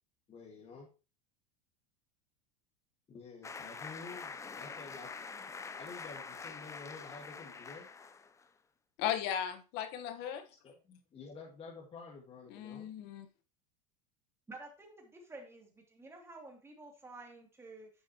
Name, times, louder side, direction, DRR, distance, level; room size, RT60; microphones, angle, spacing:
voice 1, 0.3-0.9 3.1-5.1 5.8-7.9 10.6-12.9, left 4 dB, 30° left, 1.9 m, -50 dB
sound 1, 3.4-8.5, left 5 dB, 15° left, 0.6 m, -45 dB
voice 2, 9.0-10.4 12.5-13.3, left 9 dB, 55° left, 1.3 m, -36 dB
voice 3, 14.5-17.9, right 2 dB, 15° right, 2.8 m, -51 dB
9.8 x 6.2 x 3.0 m
hypercardioid pair, 105°, 20 cm